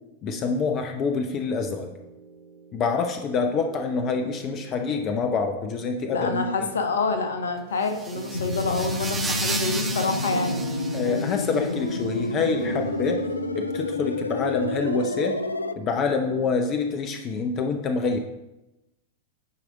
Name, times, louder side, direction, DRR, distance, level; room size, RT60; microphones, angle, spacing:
voice 1, 0.2-1.9 2.7-6.5 10.9-13.2 13.5-15.4 15.8-18.2, left 4 dB, 35° left, 5 dB, 0.7 m, -26 dB
sound 1, 1.3-16.5, right 6 dB, 40° right, 0.5 m, -42 dB
voice 2, 6.1-10.6, left 3 dB, 70° left, 6 dB, 1.0 m, -27 dB
sound 2, 7.8-11.7, right 3 dB, 15° right, 0.9 m, -33 dB
sound 3, 8.3-15.7, left 3 dB, 85° left, 0.3 m, -29 dB
10.0 x 4.9 x 3.9 m, 0.95 s
figure-of-eight pair, 95°, 0 cm